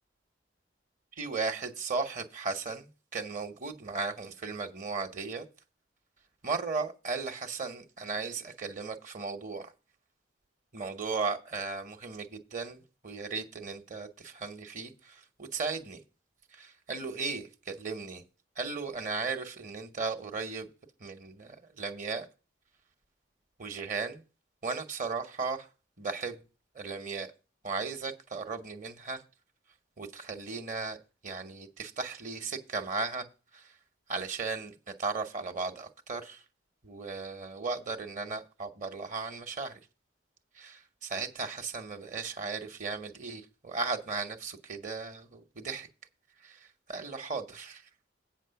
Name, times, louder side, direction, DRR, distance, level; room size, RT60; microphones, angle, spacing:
voice 1, 1.2-5.4 6.4-9.7 10.7-16.0 16.5-18.2 18.6-20.7 21.0-22.3 23.6-24.2 24.6-25.7 26.0-26.4 26.7-27.3 27.6-29.2 30.0-31.0 31.2-33.3 33.5-33.7 34.1-36.4 36.8-39.8 40.5-45.9 46.4-47.8, right 4 dB, 45° right, 0.9 m, -36 dB
8.3 x 6.0 x 5.7 m
head